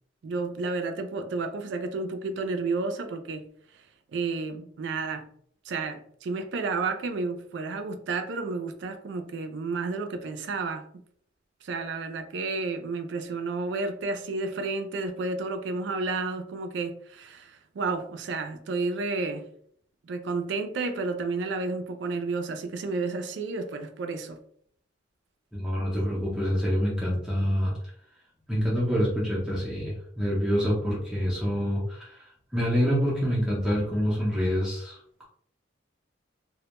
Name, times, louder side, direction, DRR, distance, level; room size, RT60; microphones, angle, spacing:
voice 1, 0.2-3.4 3.7-3.8 4.1-5.3 5.6-11.0 11.6-19.5 20.0-24.4, right 3 dB, 70° right, 0.3 m, -31 dB
voice 2, 25.5-27.7 28.5-32.2 32.5-35.3, equal, 5° right, 0.5 m, -26 dB
2.1 x 2.1 x 2.9 m
head